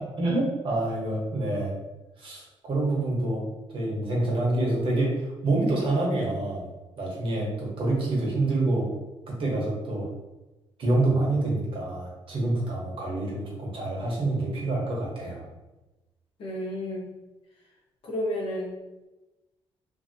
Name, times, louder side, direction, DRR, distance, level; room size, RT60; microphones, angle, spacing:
voice 1, 0.0-1.7 2.2-3.4 3.7-6.7 7.0-8.9 9.4-10.1 10.8-15.4, right 2 dB, 55° right, -3 dB, 1.1 m, -27 dB
voice 2, 16.4-17.1 18.0-18.7, equal, 60° left, -3 dB, 1.0 m, -31 dB
2.7 x 2.7 x 2.7 m, 1.0 s
cardioid pair, 100°, 11 cm